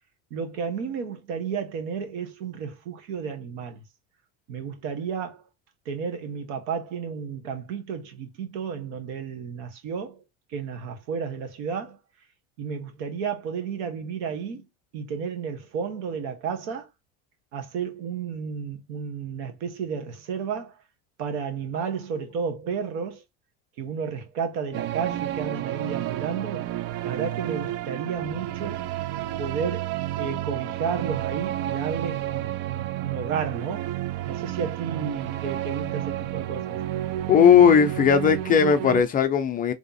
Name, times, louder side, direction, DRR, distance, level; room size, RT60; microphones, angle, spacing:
voice 1, 0.3-3.8 4.5-5.4 5.8-10.2 10.5-12.0 12.6-14.6 14.9-16.9 17.5-20.8 21.2-23.2 23.8-26.7 27.0-28.9 29.4-33.9 34.2-36.8, right 6 dB, 80° right, 1.4 m, -32 dB
sound 1, 24.7-39.0, right 13 dB, 50° right, 0.4 m, -31 dB
voice 2, 37.3-39.7, left 8 dB, 25° left, 0.5 m, -17 dB
3.5 x 2.9 x 4.1 m
cardioid pair, 150°, 34 cm